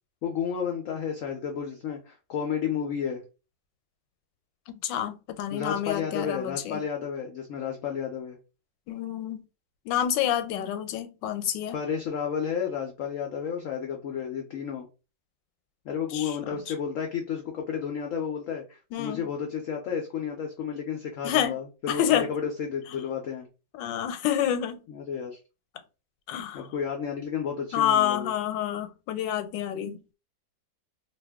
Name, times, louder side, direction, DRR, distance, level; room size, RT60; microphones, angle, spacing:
voice 1, 0.2-3.2 5.5-8.4 11.7-14.9 15.8-23.5 24.9-25.4 26.5-28.3, left 7 dB, 70° left, 0.7 m, -32 dB
voice 2, 4.7-6.8 8.9-9.4 9.8-11.8 16.1-16.7 18.9-19.3 21.2-21.6 21.9-22.3 23.7-24.8 26.3-26.7 27.7-30.0, left 10 dB, 90° left, 1.2 m, -28 dB
2.8 x 2.4 x 3.4 m
omnidirectional pair, 1.9 m